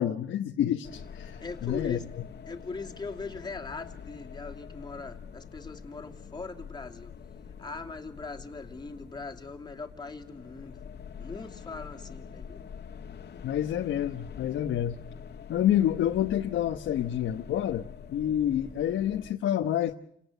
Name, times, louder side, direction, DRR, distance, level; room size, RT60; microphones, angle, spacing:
voice 1, 0.0-2.0 13.4-15.0 15.5-19.9, left 11 dB, 75° left, 4 dB, 1.2 m, -28 dB
sound 1, 0.8-19.3, left 7 dB, 55° left, 1.9 m, -45 dB
voice 2, 1.4-2.0 2.5-7.1 7.6-10.8 11.2-12.6, left 4 dB, 20° left, 3 dB, 2.8 m, -40 dB
28.5 x 18.5 x 6.9 m, 0.72 s
cardioid pair, 90°, 20 cm